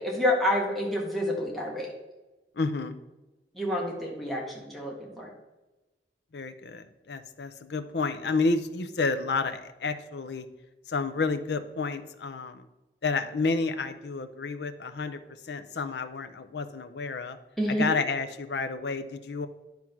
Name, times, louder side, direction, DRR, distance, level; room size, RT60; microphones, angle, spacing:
voice 1, 0.0-1.9 3.5-5.3 17.6-17.9, left 1 dB, ahead, -4 dB, 1.6 m, -28 dB
voice 2, 2.6-3.0 6.3-10.5 10.9-12.7 13.0-15.2 15.4-17.4 17.7-19.5, left 4 dB, 75° left, 10 dB, 0.6 m, -30 dB
10.5 x 3.7 x 5.9 m, 1.1 s
head